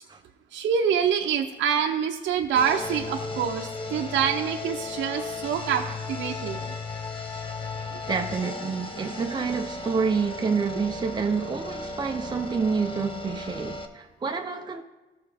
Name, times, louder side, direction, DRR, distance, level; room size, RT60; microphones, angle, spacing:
voice 1, 0.5-6.6, right 8 dB, 70° right, 0.7 m, -26 dB
sound 1, 2.5-13.8, left 3 dB, 25° left, 0.9 m, -35 dB
voice 2, 8.1-14.8, right 5 dB, 20° right, 0.7 m, -28 dB
14.0 x 4.7 x 3.5 m
cardioid pair, 90°, 20 cm